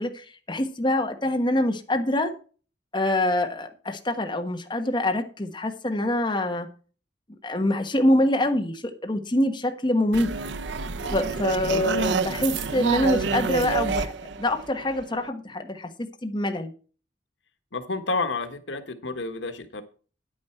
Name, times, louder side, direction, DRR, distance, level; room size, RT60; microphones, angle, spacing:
voice 1, 0.0-2.3 2.9-6.7 7.4-10.3 11.1-14.1 14.4-15.9 16.2-16.7, left 1 dB, 25° left, 5 dB, 1.3 m, -25 dB
sound 1, 10.1-15.3, right 5 dB, 80° right, 0.7 m, -28 dB
voice 2, 17.7-19.8, left 3 dB, 85° left, 9 dB, 1.4 m, -30 dB
9.9 x 9.4 x 4.4 m, 0.38 s
head